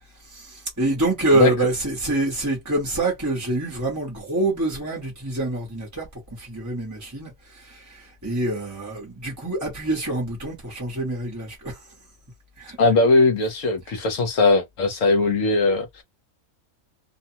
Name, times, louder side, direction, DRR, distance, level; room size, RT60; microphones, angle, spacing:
voice 1, 0.2-11.9 12.6-12.8 13.9-14.0, right 2 dB, 15° right, 0.8 m, -26 dB
voice 2, 12.8-15.9, left 3 dB, 65° left, 1.1 m, -19 dB
2.7 x 2.2 x 2.8 m
omnidirectional pair, 1.5 m